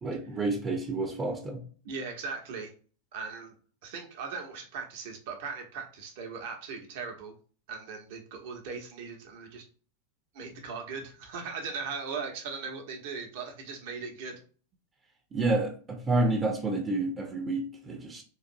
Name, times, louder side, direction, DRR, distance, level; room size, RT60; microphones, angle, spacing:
voice 1, 0.0-1.6 15.3-18.2, right 2 dB, 20° right, 0.8 m, -29 dB
voice 2, 1.8-2.7 3.1-3.5 3.8-7.3 7.7-9.6 10.3-14.4, right 5 dB, 50° right, 1.0 m, -39 dB
3.9 x 2.6 x 2.6 m
figure-of-eight pair, 90°, 0 cm